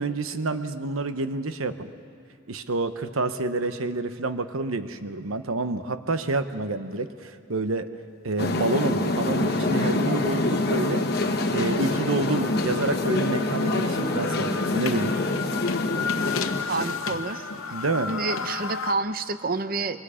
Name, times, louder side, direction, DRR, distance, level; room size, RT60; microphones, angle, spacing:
voice 1, 0.0-1.9 2.5-7.9 8.2-11.1 11.5-15.1 17.7-18.1, right 3 dB, 80° right, 10 dB, 1.0 m, -28 dB
sound 1, 8.4-16.6, left 2 dB, 50° left, 1.2 m, -26 dB
sound 2, 8.6-8.7 9.1-18.9, left 5 dB, 85° left, 1.0 m, -34 dB
voice 2, 16.7-17.5 18.1-20.0, right 3 dB, 45° right, 11 dB, 0.7 m, -28 dB
25.5 x 23.5 x 5.0 m, 2.5 s
head